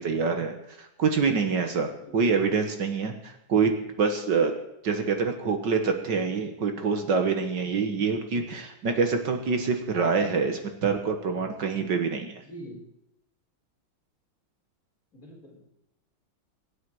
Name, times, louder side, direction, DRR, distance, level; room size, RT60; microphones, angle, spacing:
voice 1, 0.0-3.7 4.0-4.5 4.8-12.4, right 5 dB, 60° right, 5 dB, 1.9 m, -26 dB
voice 2, 12.5-12.8 15.1-15.6, right 1 dB, 45° left, -3 dB, 4.8 m, -43 dB
23.5 x 9.2 x 4.8 m, 0.80 s
omnidirectional pair, 2.2 m